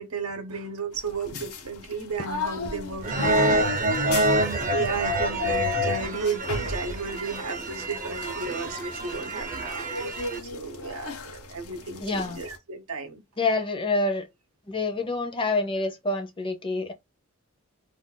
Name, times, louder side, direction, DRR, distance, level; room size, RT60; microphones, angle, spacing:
voice 1, 0.0-4.3 4.6-9.9 10.4-13.2, right 4 dB, 80° right, 0.8 m, -34 dB
sound 1, 0.9-12.6, left 3 dB, 90° left, 0.8 m, -37 dB
sound 2, 3.0-10.4, right 1 dB, 35° right, 0.6 m, -27 dB
voice 2, 12.0-12.4 13.4-14.3 14.7-16.9, left 3 dB, 25° left, 0.5 m, -27 dB
2.5 x 2.3 x 3.7 m
head